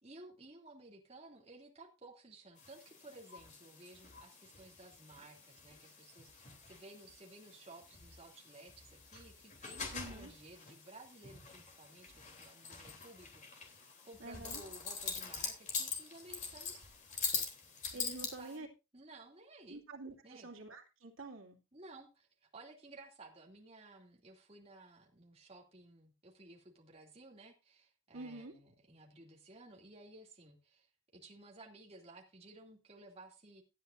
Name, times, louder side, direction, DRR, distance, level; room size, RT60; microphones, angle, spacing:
voice 1, 0.0-16.9 17.9-18.7 18.9-19.8 20.2-20.5 21.7-30.9 31.1-33.6, right 2 dB, 30° right, -1 dB, 2.7 m, -56 dB
sound 1, 2.6-18.6, left 5 dB, 35° left, 3.3 m, -44 dB
voice 2, 9.9-10.3 14.2-14.6 17.9-18.7 19.7-21.6 28.1-28.5, right 2 dB, 90° right, 1 dB, 2.6 m, -47 dB
17.5 x 10.0 x 2.6 m, 0.27 s
head